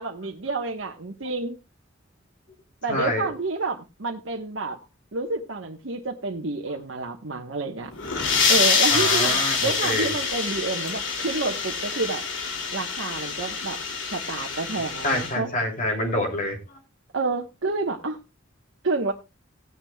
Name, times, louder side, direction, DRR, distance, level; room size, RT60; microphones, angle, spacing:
voice 1, 0.0-1.6 2.8-4.8 5.1-7.9 8.5-12.2 12.7-13.8 14.1-15.5 17.1-18.2 18.8-19.1, right 3 dB, 70° right, 1 dB, 1.2 m, -29 dB
voice 2, 2.9-3.3 8.9-10.1 15.0-16.8, left 1 dB, 40° left, 2 dB, 2.9 m, -27 dB
sound 1, 7.9-15.3, left 5 dB, 70° left, 2.7 m, -26 dB
17.5 x 9.7 x 2.3 m, 0.25 s
head